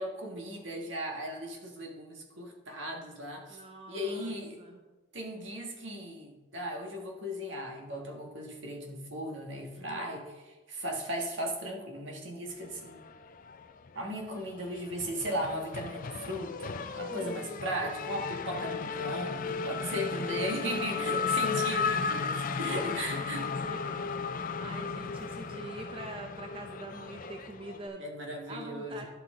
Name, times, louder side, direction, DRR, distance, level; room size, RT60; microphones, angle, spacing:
voice 1, 0.0-3.6 3.9-4.6 5.1-13.0 13.9-23.6 28.0-29.1, equal, 65° right, 1 dB, 1.6 m, -37 dB
voice 2, 3.5-4.8 9.7-10.1 17.1-17.7 19.9-20.5 21.1-21.4 22.8-23.1 23.4-28.0 28.5-29.0, right 2 dB, 30° right, 3 dB, 0.6 m, -46 dB
Race car auto racing / Accelerating revving vroom, 12.9-13.9 14.2-27.9, left 5 dB, 45° left, 0.4 m, -35 dB
11.5 x 5.9 x 3.8 m, 1.1 s
head